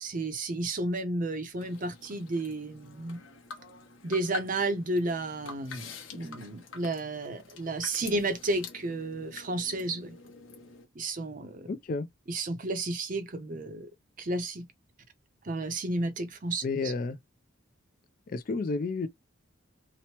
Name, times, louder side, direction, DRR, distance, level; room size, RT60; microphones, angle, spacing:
voice 1, 0.0-3.2 4.0-10.2 11.0-11.7 12.3-13.9 14.2-14.7 15.4-16.9, right 2 dB, 40° right, 0.5 m, -32 dB
sound 1, 1.6-10.9, left 5 dB, 70° left, 0.8 m, -47 dB
voice 2, 11.7-12.1 16.6-17.2 18.3-19.1, left 3 dB, 40° left, 0.3 m, -31 dB
2.9 x 2.1 x 2.8 m
head